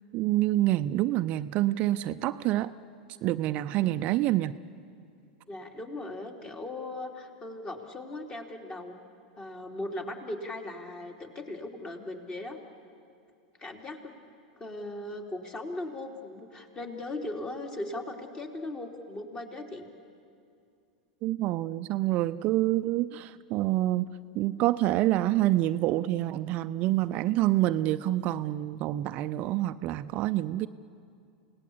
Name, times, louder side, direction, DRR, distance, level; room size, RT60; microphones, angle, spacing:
voice 1, 0.1-2.7 3.2-4.5 21.2-24.1 24.3-30.7, right 15 dB, 45° right, 11 dB, 0.5 m, -27 dB
voice 2, 3.8-4.1 5.5-9.0 9.4-12.6 13.6-14.1 14.6-19.9, left 2 dB, 25° left, 3 dB, 2.9 m, -38 dB
29.0 x 18.0 x 8.5 m, 2.5 s
hypercardioid pair, 90°, 3 cm